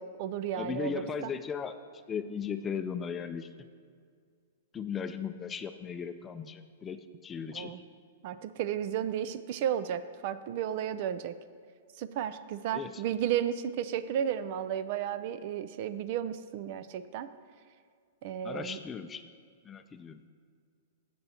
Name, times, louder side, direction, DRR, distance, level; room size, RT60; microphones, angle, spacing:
voice 1, 0.0-1.3 7.5-7.8 8.2-11.4 12.0-17.3 18.2-18.8, right 9 dB, 50° right, 14 dB, 0.4 m, -33 dB
voice 2, 0.5-1.8 2.1-3.5 4.7-7.7 12.7-13.0 18.4-19.2 19.6-20.2, left 6 dB, 20° left, 9 dB, 0.4 m, -37 dB
14.5 x 7.7 x 2.9 m, 2.1 s
hypercardioid pair, 130°, 0 cm